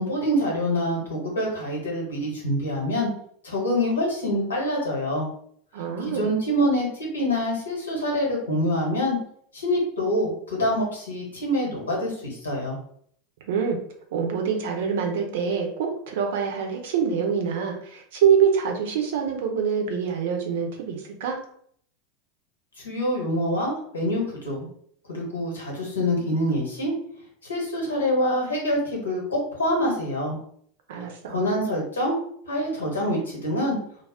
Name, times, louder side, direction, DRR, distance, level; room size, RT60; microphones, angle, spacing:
voice 1, 0.0-3.1 3.4-5.3 6.1-9.2 9.5-12.8 22.8-24.7 25.1-26.9 27.4-30.4 31.3-32.1 32.5-33.8, equal, 80° left, -3 dB, 1.1 m, -25 dB
voice 2, 5.7-6.3 13.5-13.8 14.1-21.4 30.9-31.4, right 7 dB, 60° right, 3 dB, 0.6 m, -25 dB
2.4 x 2.0 x 3.5 m, 0.63 s
figure-of-eight pair, 80°, 0 cm